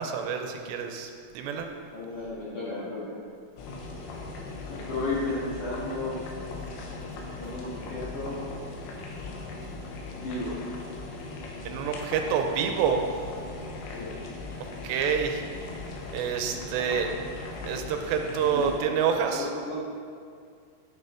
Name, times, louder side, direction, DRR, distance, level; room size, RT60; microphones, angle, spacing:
voice 1, 0.0-1.7 11.7-13.1 14.8-15.4 16.1-17.1 17.7-19.5, right 7 dB, 85° right, 4 dB, 2.8 m, -27 dB
voice 2, 1.9-3.2 4.7-6.2 7.4-8.4 10.1-10.6 14.0-14.2 18.5-18.7 19.3-19.7, left 2 dB, 55° left, -9 dB, 3.1 m, -33 dB
sound 1, 3.6-18.8, left 3 dB, 90° left, 3.4 m, -39 dB
10.0 x 6.6 x 4.9 m, 2.2 s
omnidirectional pair, 5.0 m